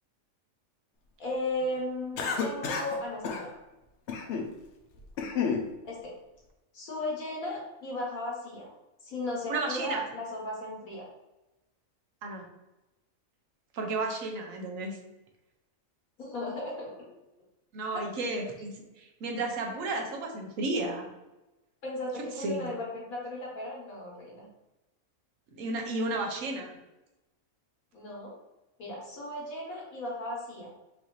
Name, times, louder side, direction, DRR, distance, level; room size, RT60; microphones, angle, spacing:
voice 1, 1.2-3.5 5.8-6.1 6.7-8.7 9.0-11.1 16.2-16.9 17.9-18.0 21.8-24.4 27.9-28.3 28.8-30.7, left 1 dB, 85° left, -3 dB, 1.7 m, -36 dB
Cough, 2.2-3.0 3.2-3.4 4.1-4.5 4.9-5.6, left 5 dB, 65° left, 0.8 m, -30 dB
voice 2, 9.5-10.0 12.2-12.4 13.7-15.0 17.7-18.7 19.0-21.1 22.4-22.7 25.5-26.8, right 2 dB, 70° right, 2 dB, 1.1 m, -33 dB
4.8 x 2.6 x 3.1 m, 0.99 s
omnidirectional pair, 1.4 m